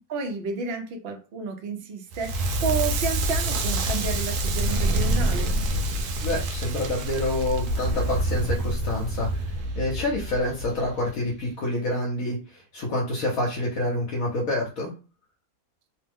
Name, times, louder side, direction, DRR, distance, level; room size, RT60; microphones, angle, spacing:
voice 1, 0.1-5.5, right 4 dB, 55° right, 4 dB, 0.7 m, -31 dB
Crackle, 2.1-11.1, right 1 dB, 80° right, 1.1 m, -26 dB
voice 2, 6.2-14.9, left 1 dB, 65° left, -2 dB, 1.1 m, -28 dB
3.0 x 2.0 x 3.4 m, 0.34 s
omnidirectional pair, 1.6 m